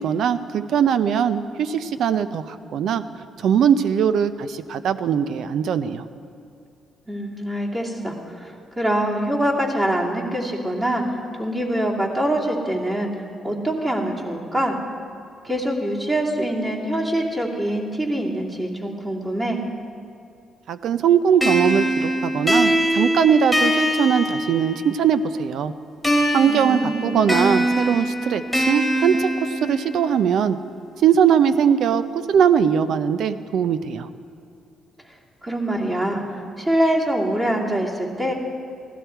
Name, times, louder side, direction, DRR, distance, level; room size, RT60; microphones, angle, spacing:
voice 1, 0.0-3.0 3.4-6.0 20.7-25.7 26.3-29.3 29.6-30.6 31.0-34.1, right 8 dB, 70° right, 12 dB, 0.6 m, -20 dB
voice 2, 7.1-11.0 11.4-13.1 13.4-14.8 15.4-19.6 26.4-27.2 35.4-38.3, right 1 dB, 25° right, -3 dB, 2.6 m, -24 dB
sound 1, 21.4-25.0 26.0-30.1, equal, ahead, 2.0 m, -22 dB
16.0 x 12.5 x 4.6 m, 2.5 s
cardioid pair, 90°, 0 cm